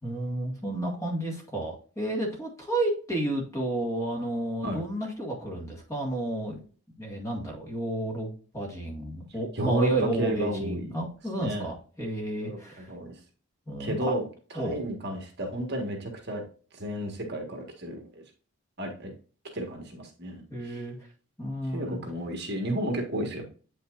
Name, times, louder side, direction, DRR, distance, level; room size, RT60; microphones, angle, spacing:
voice 1, 0.0-6.6 7.0-12.9 13.7-14.1 14.6-14.8 20.5-21.0 21.4-22.1, right 1 dB, 15° left, 0 dB, 1.9 m, -31 dB
voice 2, 9.5-10.9 11.4-11.7 12.4-13.1 13.8-14.2 14.5-16.4 16.7-18.2 18.8-19.1 19.5-20.8 21.7-23.5, right 1 dB, 50° right, 3 dB, 1.6 m, -32 dB
8.5 x 5.6 x 2.5 m, 0.39 s
head